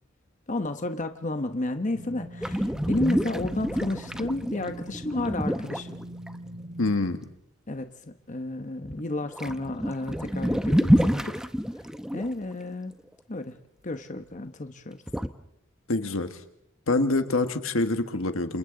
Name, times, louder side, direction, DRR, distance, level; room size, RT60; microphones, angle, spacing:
voice 1, 0.5-6.0 7.7-11.5 12.1-13.6 13.8-15.0, left 2 dB, 40° left, 7 dB, 1.0 m, -32 dB
sound 1, 1.9-6.9, right 1 dB, 70° right, 3.9 m, -43 dB
sound 2, 2.4-6.3 8.8-9.1 9.3-12.3 15.1-15.3, equal, 5° right, 0.7 m, -27 dB
voice 2, 6.8-7.2 15.9-16.4 16.9-18.6, left 2 dB, 80° left, 8 dB, 1.6 m, -25 dB
29.5 x 27.5 x 3.9 m, 0.78 s
head